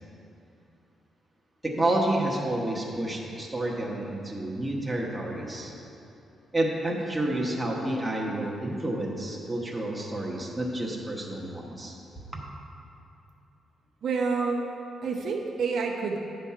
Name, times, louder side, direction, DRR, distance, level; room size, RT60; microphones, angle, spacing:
voice 1, 1.6-5.7 6.5-12.0, right 1 dB, 5° right, -3 dB, 1.1 m, -29 dB
voice 2, 14.0-14.6 15.0-16.2, right 4 dB, 65° right, 0 dB, 0.8 m, -28 dB
9.6 x 5.7 x 4.7 m, 2.7 s
cardioid pair, 145°, 0 cm